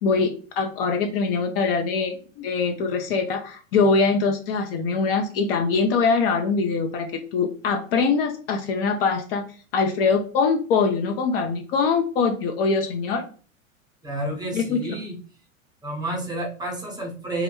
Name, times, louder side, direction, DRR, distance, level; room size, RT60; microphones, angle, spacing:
voice 1, 0.0-9.4 9.7-13.3 14.5-15.0, left 4 dB, 45° left, 5 dB, 0.4 m, -23 dB
voice 2, 14.0-15.2 15.8-17.4, right 1 dB, 10° right, -1 dB, 0.6 m, -30 dB
2.3 x 2.1 x 2.9 m, 0.41 s
hypercardioid pair, 110°, 40 cm